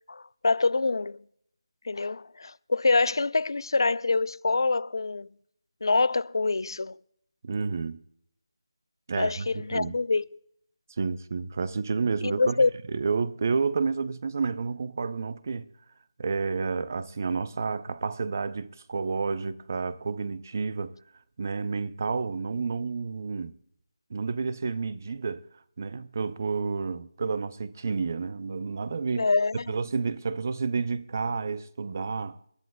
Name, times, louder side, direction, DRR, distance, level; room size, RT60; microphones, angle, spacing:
voice 1, 0.1-1.2 1.8-5.3 5.8-7.0 9.2-10.2 12.2-12.7 29.2-29.6, left 3 dB, 60° left, 0.5 m, -25 dB
voice 2, 7.4-8.0 9.1-9.9 11.0-12.6 12.9-15.7 16.2-21.0 21.4-23.5 24.1-25.5 25.8-29.3 29.7-32.4, right 4 dB, 35° right, 0.6 m, -30 dB
28.0 x 11.5 x 2.2 m
figure-of-eight pair, 170°, 3 cm